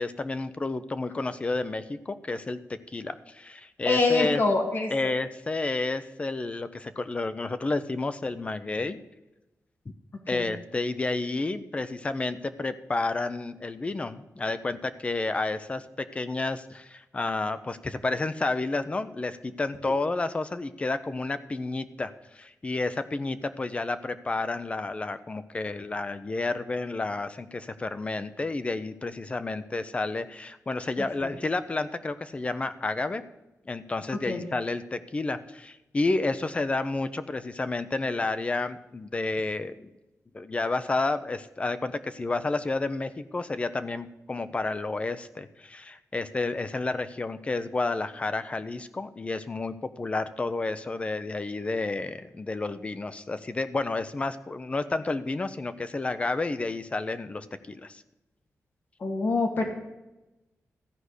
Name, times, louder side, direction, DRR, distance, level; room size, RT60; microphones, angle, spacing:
voice 1, 0.0-4.4 4.9-9.0 10.3-33.2 33.6-39.9 40.3-58.0, left 3 dB, 20° left, 11 dB, 0.6 m, -30 dB
voice 2, 3.9-4.9 10.3-10.5 19.8-19.9 34.3-34.4 59.0-59.6, left 3 dB, 40° left, 2 dB, 1.9 m, -25 dB
14.5 x 4.9 x 8.1 m, 1.0 s
wide cardioid pair, 180°, 5 cm